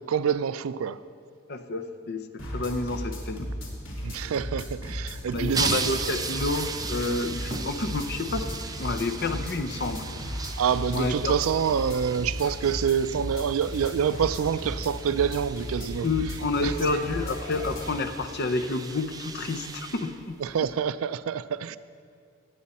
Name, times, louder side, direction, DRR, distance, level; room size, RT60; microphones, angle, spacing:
voice 1, 0.1-1.0 4.0-5.8 10.6-16.1 16.6-16.7 20.4-21.8, right 7 dB, 75° right, 0.4 m, -26 dB
voice 2, 1.5-3.5 5.3-8.5 8.8-10.1 10.9-11.4 12.4-12.6 16.0-20.4, left 3 dB, 50° left, 0.7 m, -29 dB
sound 1, 2.4-18.0, equal, 70° left, 2.6 m, -36 dB
sound 2, 5.3-20.7, right 4 dB, 20° right, 0.5 m, -37 dB
17.0 x 9.3 x 4.2 m
head